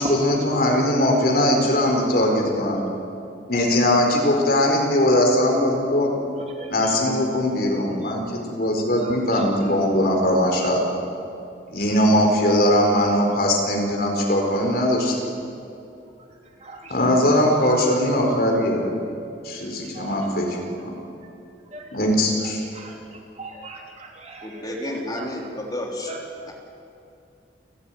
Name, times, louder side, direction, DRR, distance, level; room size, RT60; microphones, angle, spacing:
voice 1, 0.0-2.8 3.5-6.1 6.7-10.9 11.7-15.3 16.9-18.9 19.4-20.9 21.9-22.6, left 1 dB, 55° left, 1 dB, 4.4 m, -20 dB
voice 2, 6.6-6.9 7.4-7.7 8.0-8.1 9.0-9.1 16.6-16.9 19.8-20.3 21.7-21.8 22.7-23.0 23.4-25.3 26.1-26.2, right 2 dB, 35° right, 0 dB, 3.0 m, -38 dB
voice 3, 24.4-26.1 26.5-26.6, left 1 dB, 20° left, -1 dB, 3.5 m, -31 dB
29.5 x 13.0 x 9.3 m, 2.6 s
head